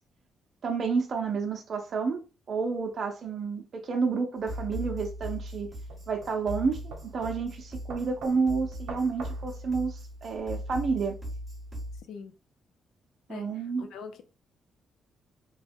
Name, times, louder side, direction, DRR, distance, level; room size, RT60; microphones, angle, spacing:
voice 1, 0.6-5.7 6.1-11.2 13.3-13.9, right 5 dB, 45° right, 0.5 m, -30 dB
sound 1, 4.4-12.0, equal, 15° right, 0.8 m, -39 dB
sound 2, 5.2-10.4, right 4 dB, 90° right, 0.7 m, -47 dB
voice 2, 13.8-14.2, left 6 dB, 85° left, 0.4 m, -42 dB
2.8 x 2.2 x 3.4 m
cardioid pair, 130°, 0 cm